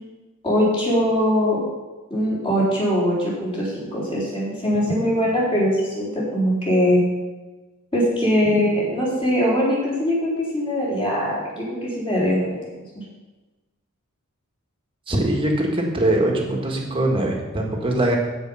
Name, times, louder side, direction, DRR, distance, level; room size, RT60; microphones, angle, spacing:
voice 1, 0.4-1.6 2.1-7.0 7.9-13.0, equal, 25° left, -7 dB, 4.2 m, -22 dB
voice 2, 15.1-18.2, right 1 dB, 25° right, 1 dB, 1.7 m, -22 dB
15.5 x 5.4 x 5.6 m, 1.2 s
head